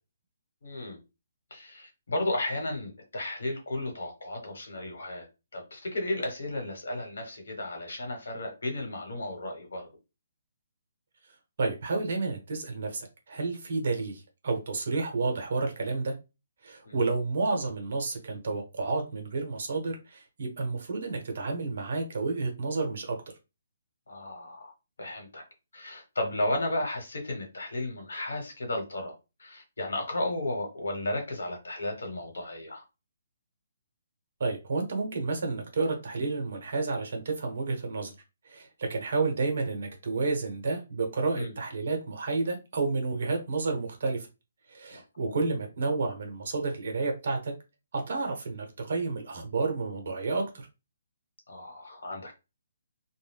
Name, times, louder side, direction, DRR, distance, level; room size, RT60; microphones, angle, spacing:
voice 1, 0.6-1.0 1.5-5.3 5.5-9.9 16.8-17.0 24.1-24.7 25.0-25.4 25.7-29.1 29.4-32.8 41.4-41.5 44.9-45.4 51.5-52.3, left 1 dB, 90° left, 1.3 m, -34 dB
voice 2, 11.6-16.1 16.6-23.2 34.4-38.1 38.4-44.3 44.7-47.5 47.9-50.7, right 3 dB, 50° right, 1.0 m, -30 dB
2.5 x 2.2 x 3.4 m
hypercardioid pair, 170°, 0 cm